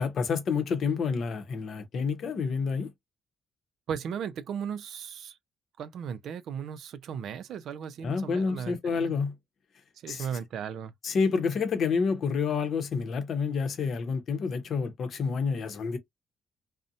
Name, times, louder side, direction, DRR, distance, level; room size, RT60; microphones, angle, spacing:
voice 1, 0.0-2.9 8.0-9.3 10.1-10.3 11.0-16.0, left 5 dB, 60° left, 0.7 m, -28 dB
voice 2, 3.9-5.4 5.8-9.1 10.0-10.9, right 7 dB, 70° right, 0.4 m, -36 dB
2.7 x 2.0 x 2.5 m
cardioid pair, 90°, 0 cm